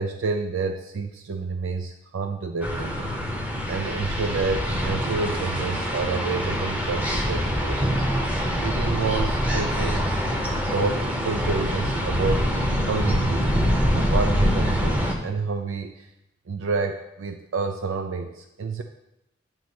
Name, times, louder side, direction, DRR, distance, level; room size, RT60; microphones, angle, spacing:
voice 1, 0.0-3.1 3.7-8.1 8.6-10.1 10.7-12.5 12.9-13.6 13.9-16.1 16.5-18.8, right 4 dB, 75° right, 6 dB, 0.4 m, -29 dB
sound 1, 2.6-15.1, equal, 5° right, 0.7 m, -25 dB
9.3 x 3.2 x 5.8 m, 0.87 s
head